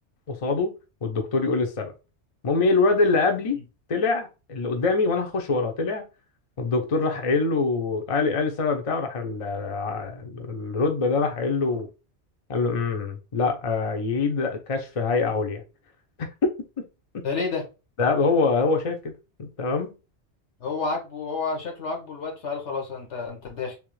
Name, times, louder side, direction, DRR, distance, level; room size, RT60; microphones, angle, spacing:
voice 1, 0.3-0.7 1.0-1.9 2.4-3.6 3.9-6.0 6.6-11.9 12.5-15.6 16.2-16.8 17.1-17.2 18.0-19.1 19.4-20.0, left 4 dB, 35° left, 0.6 m, -24 dB
voice 2, 17.2-17.6 20.6-23.8, left 4 dB, 85° left, 1.6 m, -30 dB
3.5 x 2.9 x 3.1 m
omnidirectional pair, 1.2 m